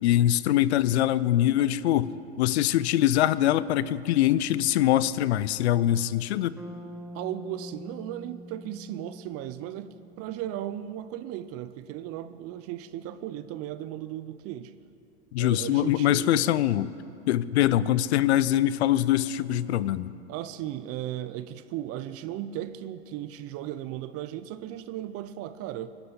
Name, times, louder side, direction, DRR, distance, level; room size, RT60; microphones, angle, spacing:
voice 1, 0.0-2.1 2.4-6.6 15.3-16.9 17.3-20.1, left 13 dB, 80° left, 18 dB, 0.6 m, -23 dB
Bass guitar, 6.6-10.6, equal, 5° right, 1.3 m, -45 dB
voice 2, 7.1-14.7 15.4-16.5 20.3-25.9, right 12 dB, 45° right, 13 dB, 0.6 m, -36 dB
21.5 x 11.5 x 4.0 m, 2.6 s
hypercardioid pair, 90°, 33 cm